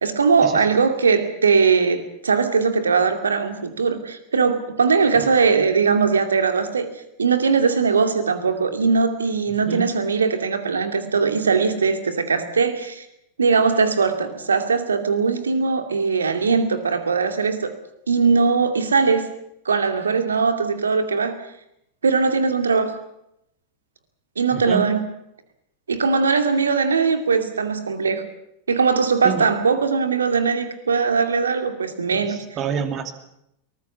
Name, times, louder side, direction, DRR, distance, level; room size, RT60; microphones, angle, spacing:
voice 1, 0.0-6.9 7.2-13.0 13.4-17.7 18.1-19.3 19.6-21.4 22.0-23.0 24.4-25.0 25.9-28.2 28.7-32.4, right 5 dB, 70° right, 8 dB, 2.5 m, -20 dB
voice 2, 24.5-24.8 29.2-29.4 32.1-33.1, right 7 dB, 30° right, 8 dB, 2.5 m, -28 dB
23.0 x 19.5 x 7.1 m, 0.78 s
figure-of-eight pair, 90°, 0 cm